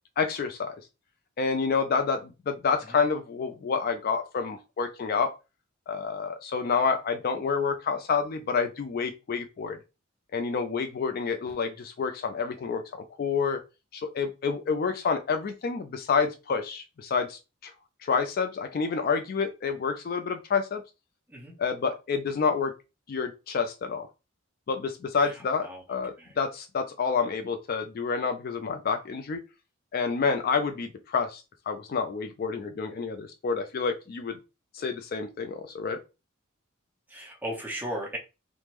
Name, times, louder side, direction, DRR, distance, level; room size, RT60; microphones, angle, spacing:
voice 1, 0.2-0.8 1.4-5.3 5.9-9.8 10.3-13.6 13.9-17.7 18.0-20.8 21.6-22.7 23.1-24.1 24.7-29.4 29.9-34.4 34.7-36.0, left 5 dB, 45° left, 7 dB, 0.3 m, -28 dB
voice 2, 25.2-25.8 26.2-26.3 37.1-38.2, equal, 10° right, -2 dB, 0.9 m, -37 dB
3.3 x 2.0 x 2.9 m, 0.28 s
head